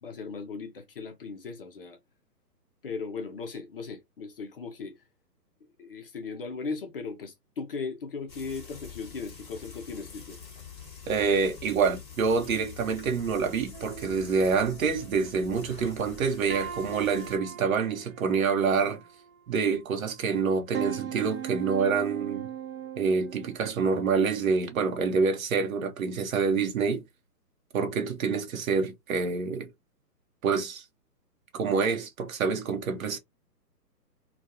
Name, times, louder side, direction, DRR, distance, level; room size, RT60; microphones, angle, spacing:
voice 1, 0.0-2.0 2.8-5.0 5.8-10.4, left 4 dB, 35° left, 0.5 m, -37 dB
Frying (food), 8.3-17.4, left 7 dB, 10° left, 1.1 m, -46 dB
voice 2, 11.1-19.0 19.5-22.5 23.0-27.0 27.7-29.7 30.4-30.8 31.5-33.2, right 5 dB, 55° right, 0.9 m, -27 dB
sound 1, 13.7-15.6 16.0-16.2 16.5-19.8 20.3-23.6, right 9 dB, 40° right, 0.5 m, -40 dB
2.3 x 2.3 x 2.7 m
hypercardioid pair, 140°, 49 cm